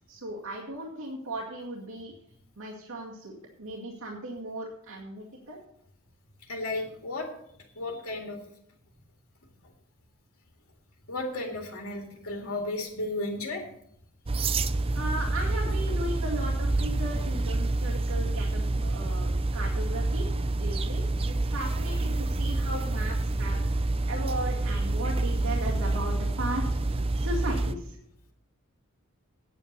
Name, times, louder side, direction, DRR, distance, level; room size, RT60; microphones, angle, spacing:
voice 1, 0.1-2.1 2.6-5.6 14.9-20.3 20.6-28.0, right 1 dB, 80° right, -4 dB, 2.2 m, -37 dB
voice 2, 6.5-7.3 7.8-8.4 11.1-13.6, left 2 dB, 85° left, 1 dB, 2.2 m, -33 dB
sound 1, 14.3-27.7, right 2 dB, 25° right, 0.5 m, -28 dB
9.2 x 8.7 x 6.7 m, 0.73 s
head